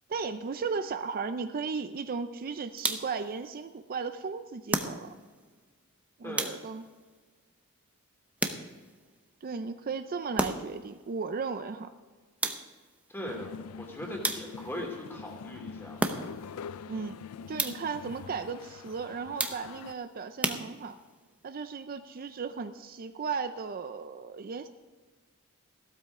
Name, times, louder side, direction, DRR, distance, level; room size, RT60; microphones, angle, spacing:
voice 1, 0.1-5.1 6.2-6.9 9.4-11.9 16.9-17.2 17.5-20.9 21.4-24.7, right 5 dB, 45° right, 9 dB, 0.5 m, -35 dB
sound 1, 2.8-3.3 4.7-5.4 6.4-7.0 8.4-9.0 10.4-10.9 12.4-12.9 14.2-14.8 16.0-16.6 17.6-18.0 19.4-19.9 20.4-21.2, right 1 dB, 5° right, 0.8 m, -33 dB
voice 2, 6.2-6.5 13.1-16.0, left 1 dB, 10° left, 0 dB, 3.0 m, -39 dB
sound 2, 13.3-19.9, left 6 dB, 80° left, 0.4 m, -44 dB
15.5 x 12.5 x 3.7 m, 1.4 s
head